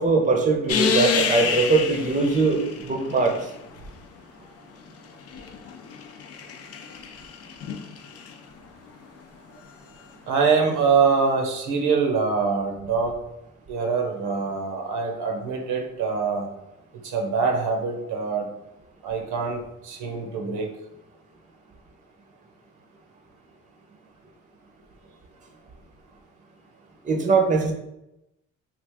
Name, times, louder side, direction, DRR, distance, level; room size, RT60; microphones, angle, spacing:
voice 1, 0.0-3.4 27.0-27.7, right 4 dB, 25° right, 3 dB, 0.6 m, -21 dB
sound 1, 0.7-3.8 4.9-8.3 10.7-10.8, left 6 dB, 55° left, 0.5 m, -29 dB
voice 2, 10.3-13.2 13.7-16.5 17.0-18.5 19.0-20.7, right 5 dB, 85° right, 3 dB, 0.8 m, -24 dB
3.2 x 2.4 x 3.4 m, 0.86 s
cardioid pair, 90°, 30 cm